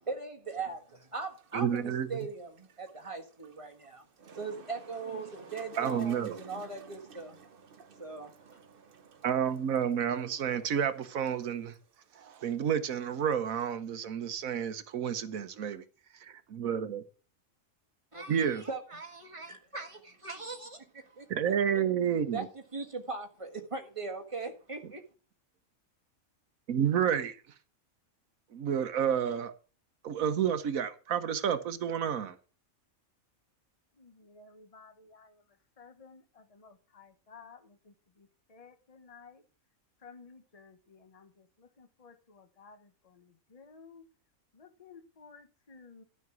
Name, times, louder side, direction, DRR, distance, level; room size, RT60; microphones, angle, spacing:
voice 1, 0.1-4.1 4.3-7.4 8.0-8.6 18.1-21.8 22.3-22.4 22.7-25.0, right 4 dB, 20° right, 1.7 m, -40 dB
sound 1, 0.7-13.8, right 6 dB, 45° right, 0.9 m, -54 dB
voice 2, 1.5-2.3 5.8-6.4 9.2-11.8 12.1-15.8 16.1-17.0 18.3-18.6 21.3-22.5 26.7-27.5 28.5-29.5 30.0-32.4, right 8 dB, 75° right, 1.3 m, -30 dB
voice 3, 33.9-39.4 40.0-44.1 44.5-46.0, left 5 dB, 25° left, 1.2 m, -55 dB
12.5 x 5.9 x 6.1 m
omnidirectional pair, 1.5 m